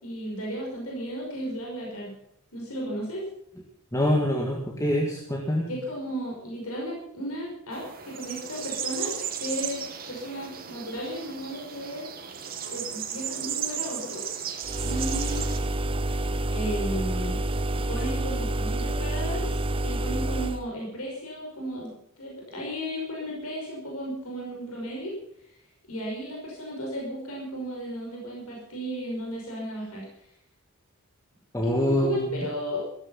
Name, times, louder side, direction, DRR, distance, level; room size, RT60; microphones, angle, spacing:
voice 1, 0.0-2.2 2.5-3.2 5.7-12.1 12.7-14.3 14.8-15.4 16.5-17.4 17.7-25.2 25.9-30.1 31.6-32.8, equal, 80° left, -2 dB, 5.7 m, -34 dB
voice 2, 3.9-5.7 31.5-32.3, left 1 dB, 15° left, 0 dB, 2.0 m, -25 dB
sound 1, 7.7-15.6, right 8 dB, 40° right, 2.1 m, -35 dB
sound 2, 14.6-20.6, right 1 dB, 25° right, 0.5 m, -28 dB
15.5 x 14.0 x 5.7 m, 0.74 s
head